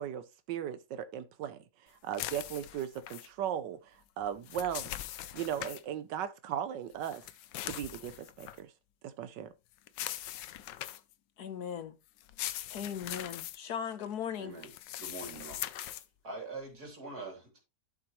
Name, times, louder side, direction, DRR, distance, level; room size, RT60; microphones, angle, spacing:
voice 1, 0.0-4.9 5.3-7.2 7.6-8.7 9.0-9.5, right 9 dB, 80° right, 1.3 m, -37 dB
sound 1, 2.1-3.3 4.2-5.8 7.0-8.6 9.9-11.1 12.2-13.6 14.6-16.0, left 13 dB, 85° left, 1.3 m, -41 dB
voice 2, 11.4-11.9 12.7-14.5, left 8 dB, 65° left, 1.4 m, -38 dB
voice 3, 14.4-14.7 15.0-15.6 16.2-17.6, right 3 dB, 60° right, 3.7 m, -43 dB
11.5 x 6.0 x 3.0 m
omnidirectional pair, 1.9 m